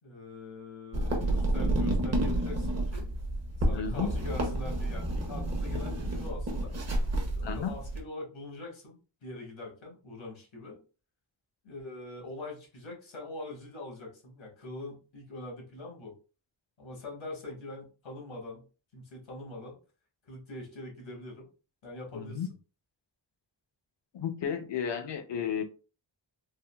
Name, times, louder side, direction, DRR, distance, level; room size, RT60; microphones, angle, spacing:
voice 1, 0.0-3.1 3.7-6.7 7.3-10.8 11.6-16.1 16.8-18.6 18.9-19.8 20.2-21.5 21.8-22.5, left 2 dB, 85° left, -1 dB, 1.4 m, -43 dB
sound 1, 0.9-8.0, right 1 dB, 35° right, 0.7 m, -30 dB
voice 2, 3.7-4.1 7.4-7.8 22.1-22.5 24.1-25.6, left 7 dB, 65° left, 6 dB, 0.7 m, -33 dB
3.6 x 2.4 x 2.3 m, 0.34 s
wide cardioid pair, 165°, 45 cm